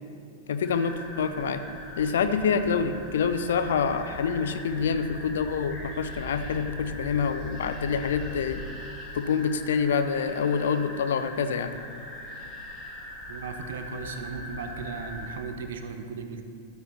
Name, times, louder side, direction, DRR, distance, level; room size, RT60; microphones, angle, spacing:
voice 1, 0.5-1.6 2.0-8.7 9.1-11.7, left 6 dB, 60° left, 11 dB, 0.6 m, -26 dB
sound 1, 0.6-15.4, left 1 dB, 35° left, 2.8 m, -40 dB
voice 2, 13.3-16.4, right 5 dB, 60° right, 7 dB, 0.9 m, -37 dB
11.5 x 9.0 x 4.4 m, 2.4 s
figure-of-eight pair, 90°, 0 cm